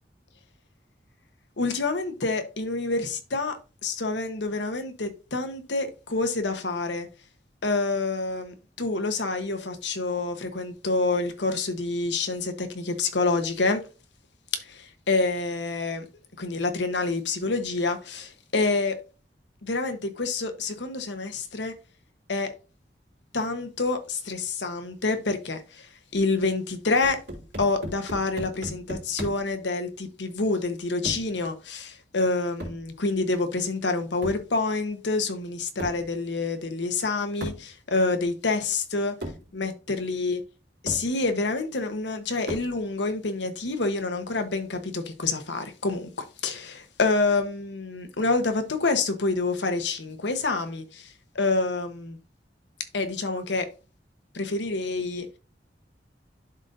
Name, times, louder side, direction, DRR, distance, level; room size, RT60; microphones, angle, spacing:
voice 1, 1.6-7.1 7.6-13.8 14.6-16.0 16.4-18.9 19.6-21.7 22.3-22.5 23.3-27.2 27.6-39.1 39.5-40.4 40.8-52.2 52.9-53.7 54.3-55.3, left 3 dB, 85° left, 1.1 m, -27 dB
sound 1, 27.0-29.5 31.0-31.4 32.6-32.9 34.2-34.5 35.8-36.1 37.4-37.7 38.7-38.8 39.2-39.5 40.3-40.4 40.9-41.1 42.5-42.8, equal, 75° right, 2.9 m, -37 dB
11.5 x 3.9 x 2.6 m
head